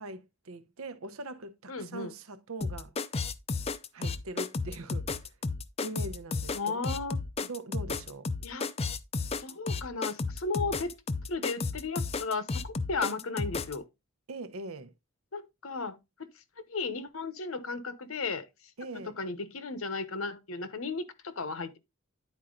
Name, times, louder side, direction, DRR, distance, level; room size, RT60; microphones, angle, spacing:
voice 1, 0.0-2.9 3.9-5.3 5.8-7.0 7.4-8.3 14.3-14.9 18.8-19.2, right 2 dB, 75° right, 0.8 m, -42 dB
voice 2, 1.7-2.1 6.5-7.2 8.4-8.7 9.4-10.9 11.3-13.8 15.3-16.3 16.7-18.5 19.2-21.8, left 4 dB, 70° left, 1.0 m, -35 dB
sound 1, 2.6-13.8, left 4 dB, 30° left, 0.5 m, -33 dB
9.9 x 4.5 x 3.8 m
head